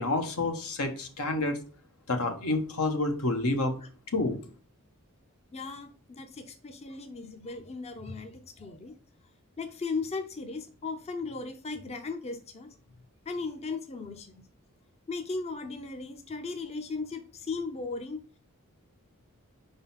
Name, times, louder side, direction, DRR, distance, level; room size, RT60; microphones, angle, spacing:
voice 1, 0.0-1.6 2.1-3.7 4.1-4.4, left 2 dB, 80° left, 5 dB, 1.2 m, -28 dB
voice 2, 5.5-8.9 9.6-12.7 13.3-14.5 15.1-18.2, left 4 dB, 30° left, 7 dB, 0.6 m, -37 dB
5.1 x 4.0 x 5.6 m, 0.39 s
head